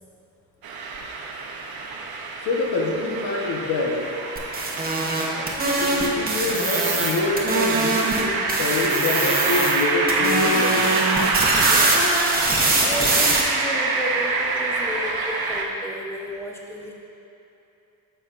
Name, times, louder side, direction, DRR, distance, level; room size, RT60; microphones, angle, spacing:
sound 1, 0.6-15.6, right 3 dB, 70° right, 0.8 m, -26 dB
voice 1, 2.4-4.1 5.3-5.5 5.8-11.1 13.3-13.4, left 3 dB, 90° left, -1 dB, 1.2 m, -26 dB
sound 2, 4.4-8.2 8.5-9.8 10.1-13.4, right 2 dB, 25° right, 0.8 m, -23 dB
voice 2, 11.6-12.2 12.8-16.9, left 1 dB, 5° left, -1 dB, 0.6 m, -33 dB
9.8 x 6.9 x 2.5 m, 2.9 s
wide cardioid pair, 170°, 38 cm